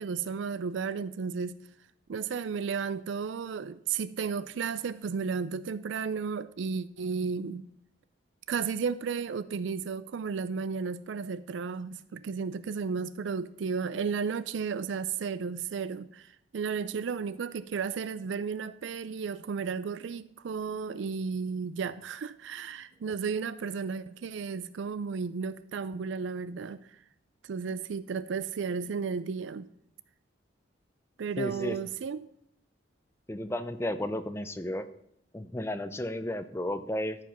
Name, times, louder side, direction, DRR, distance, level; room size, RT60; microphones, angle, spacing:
voice 1, 0.0-1.6 2.1-7.7 8.5-27.0 27.4-29.7 31.2-32.2, right 5 dB, 70° right, 15 dB, 0.4 m, -33 dB
voice 2, 31.4-31.8 33.3-34.8 35.3-37.2, left 1 dB, 15° left, 10 dB, 0.5 m, -33 dB
13.0 x 5.0 x 5.8 m, 0.72 s
head